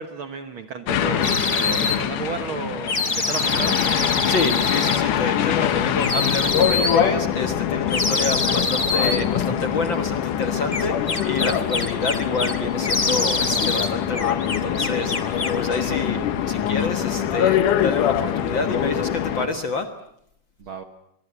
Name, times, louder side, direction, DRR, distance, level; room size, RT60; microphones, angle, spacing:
voice 1, 0.0-3.8 20.6-20.8, right 5 dB, 55° right, 8 dB, 1.7 m, -33 dB
sound 1, 0.9-19.5, left 9 dB, 85° left, 2.8 m, -24 dB
sound 2, 1.2-2.0 2.9-5.0 6.0-7.0 7.9-9.2 10.7-12.6 12.8-13.9 14.1-15.6, left 3 dB, 25° left, 1.1 m, -25 dB
voice 2, 4.3-16.2 16.5-19.9, left 3 dB, 50° left, 7 dB, 1.6 m, -28 dB
24.5 x 23.5 x 8.3 m, 0.75 s
omnidirectional pair, 3.6 m